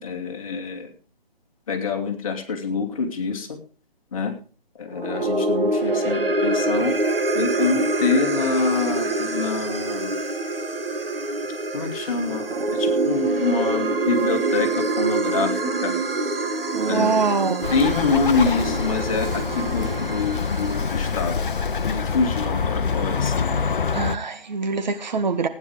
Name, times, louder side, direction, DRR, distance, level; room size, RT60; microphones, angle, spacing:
voice 1, 0.0-0.9 1.7-3.6 4.1-4.3 4.8-6.9 7.3-10.1 11.7-15.9 16.8-17.1 17.7-21.4 21.8-23.6, left 4 dB, 35° left, 2.6 m, -26 dB
sound 1, 4.9-21.4, right 2 dB, 70° right, 1.8 m, -25 dB
voice 2, 16.7-17.7 23.9-25.5, right 4 dB, 50° right, 1.7 m, -24 dB
Bird, 17.6-24.2, left 5 dB, 60° left, 0.9 m, -25 dB
16.0 x 9.7 x 4.9 m
figure-of-eight pair, 145°, 29 cm